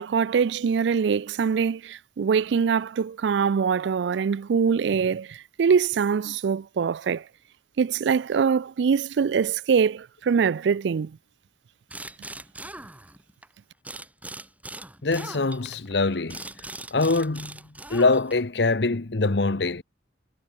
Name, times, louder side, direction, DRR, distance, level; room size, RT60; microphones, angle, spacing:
voice 1, 0.0-7.2 7.8-11.1, right 6 dB, 70° right, 0.4 m, -23 dB
sound 1, 11.9-13.5 13.8-18.6, right 2 dB, 10° right, 2.3 m, -40 dB
voice 2, 15.0-16.4 16.9-17.6 17.9-19.8, left 3 dB, 65° left, 1.0 m, -23 dB
head